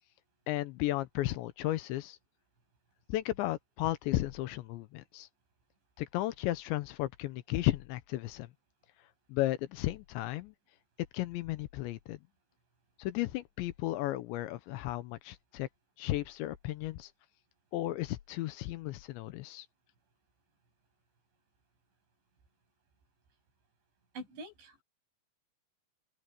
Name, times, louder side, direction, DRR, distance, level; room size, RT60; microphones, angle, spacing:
voice 1, 0.5-2.2 3.1-5.3 6.0-8.5 9.3-10.5 11.1-12.2 13.0-15.7 16.0-17.1 17.7-19.7, left 16 dB, 80° left, 3.1 m, -34 dB
voice 2, 24.1-24.8, right 2 dB, 75° right, 10.0 m, -45 dB
open air
omnidirectional pair, 5.4 m